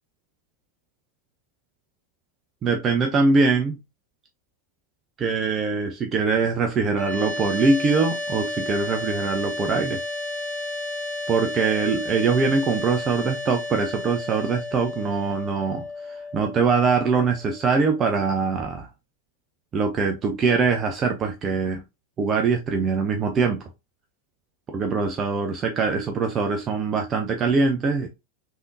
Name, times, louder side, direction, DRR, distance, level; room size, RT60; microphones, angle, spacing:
voice 1, 2.6-3.8 5.2-10.0 11.3-18.9 19.7-21.8 22.2-23.6 24.7-28.1, right 4 dB, 25° right, 0.5 m, -23 dB
sound 1, 6.9-18.0, left 2 dB, 35° left, 1.9 m, -32 dB
3.4 x 2.6 x 2.4 m
figure-of-eight pair, 90°, 0 cm